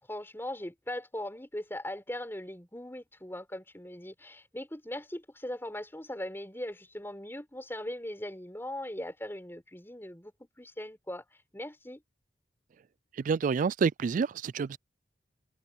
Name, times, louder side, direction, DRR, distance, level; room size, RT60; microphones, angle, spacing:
voice 1, 0.0-11.2 11.5-12.0, left 1 dB, 15° left, 4.6 m, -40 dB
voice 2, 13.2-14.8, right 5 dB, 45° right, 0.3 m, -28 dB
head